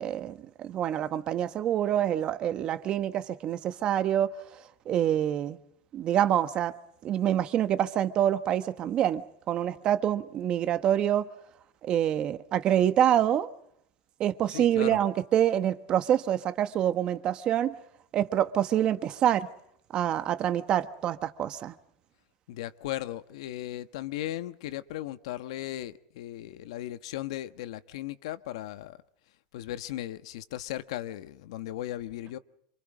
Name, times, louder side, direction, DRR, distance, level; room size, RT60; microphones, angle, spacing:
voice 1, 0.0-4.3 4.8-5.6 5.9-6.7 7.0-11.3 11.8-13.5 14.2-17.7 18.1-19.5 19.9-21.7, right 10 dB, 30° right, 1.4 m, -26 dB
voice 2, 14.5-15.0 22.5-29.0 29.5-32.4, left 14 dB, 80° left, 1.4 m, -37 dB
28.0 x 27.0 x 5.1 m
supercardioid pair, 165°, 3 cm